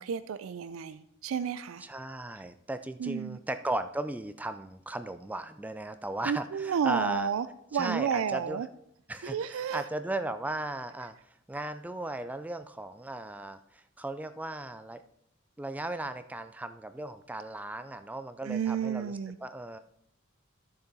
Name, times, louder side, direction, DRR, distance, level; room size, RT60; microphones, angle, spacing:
voice 1, 0.0-1.8 3.0-3.4 6.2-7.5 7.7-8.7 9.2-9.8 18.4-19.4, right 7 dB, 90° right, 14 dB, 0.4 m, -31 dB
voice 2, 1.8-7.3 7.7-8.6 9.1-15.0 15.6-19.8, right 2 dB, 10° right, 10 dB, 0.3 m, -36 dB
12.5 x 6.6 x 4.1 m, 0.75 s
head